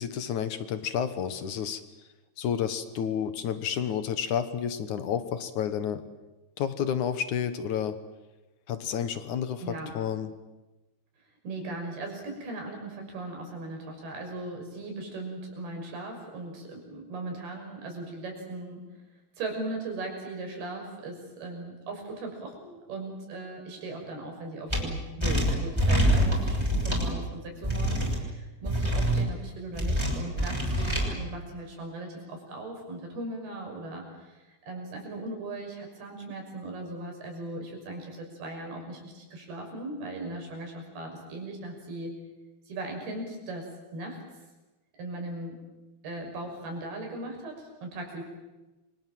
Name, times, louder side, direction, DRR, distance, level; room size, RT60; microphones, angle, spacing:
voice 1, 0.0-1.8 2.4-6.0 6.6-8.0 8.7-10.3, left 8 dB, 60° left, 11 dB, 2.3 m, -30 dB
voice 2, 9.6-9.9 11.4-18.8 19.4-42.1 42.7-44.2 44.9-45.6 46.0-48.2, right 2 dB, 70° right, 2 dB, 8.0 m, -38 dB
sound 1, 24.7-24.8 25.2-27.1 27.6-28.2 28.7-29.2 29.7-31.1, equal, 5° right, 6.0 m, -25 dB
28.5 x 25.5 x 7.5 m, 1.1 s
omnidirectional pair, 4.6 m